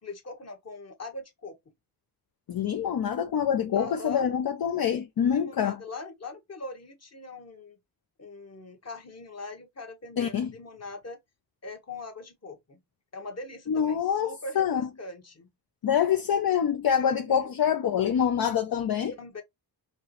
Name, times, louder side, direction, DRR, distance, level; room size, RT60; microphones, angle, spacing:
voice 1, 0.0-1.6 3.7-4.3 5.2-7.8 8.2-11.2 11.6-12.8 13.1-15.5 17.0-17.5 19.2-19.4, left 2 dB, 35° left, 1.3 m, -41 dB
voice 2, 2.5-5.8 10.2-10.5 13.7-14.8 15.8-19.1, left 8 dB, 55° left, 0.6 m, -26 dB
4.4 x 3.0 x 3.1 m
wide cardioid pair, 100°, 42 cm